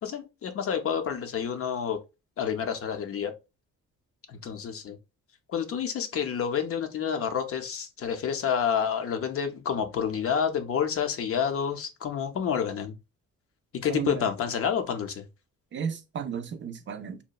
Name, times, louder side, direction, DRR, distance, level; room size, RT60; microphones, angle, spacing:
voice 1, 0.0-2.0 2.4-3.3 4.3-5.0 5.5-12.9 13.7-15.3, left 7 dB, 50° left, 0.5 m, -29 dB
voice 2, 13.9-14.3 15.7-17.2, right 7 dB, 40° right, 0.4 m, -33 dB
2.8 x 2.1 x 2.3 m
cardioid pair, 90°, 30 cm